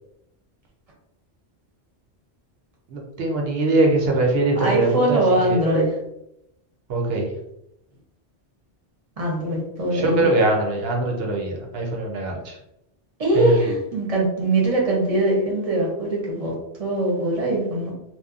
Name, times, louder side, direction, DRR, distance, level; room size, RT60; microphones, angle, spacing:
voice 1, 2.9-5.6 6.9-7.3 9.9-12.6 13.3-13.7, right 2 dB, 65° right, 0 dB, 0.8 m, -22 dB
voice 2, 4.6-5.9 9.2-10.3 13.2-16.5 16.8-17.9, right 1 dB, 35° right, -3 dB, 0.8 m, -22 dB
2.8 x 2.2 x 2.4 m, 0.82 s
omnidirectional pair, 1.1 m